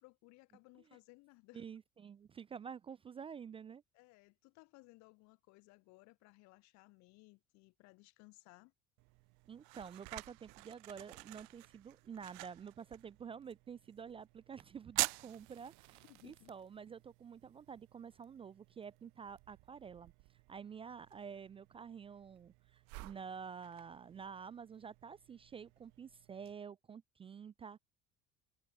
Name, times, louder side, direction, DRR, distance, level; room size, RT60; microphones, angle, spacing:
voice 1, 0.0-1.6 3.9-8.7 16.0-16.5, left 24 dB, 70° left, 1.4 m, -61 dB
voice 2, 1.5-3.8 9.5-20.1 20.5-27.8, right 6 dB, 20° right, 0.4 m, -49 dB
sound 1, 9.0-26.5, right 29 dB, 75° right, 0.6 m, -48 dB
cardioid pair, 155°, 29 cm